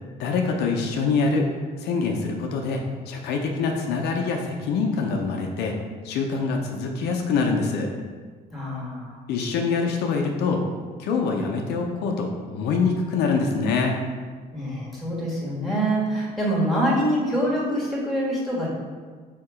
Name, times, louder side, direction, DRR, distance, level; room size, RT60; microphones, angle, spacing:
voice 1, 0.2-1.5 1.8-5.8 6.0-7.9 9.3-10.6 11.0-14.0, left 4 dB, 75° left, 2 dB, 0.5 m, -25 dB
voice 2, 8.5-9.2 14.5-18.7, right 1 dB, ahead, -5 dB, 1.4 m, -25 dB
3.5 x 2.8 x 4.7 m, 1.5 s
cardioid pair, 110°, 17 cm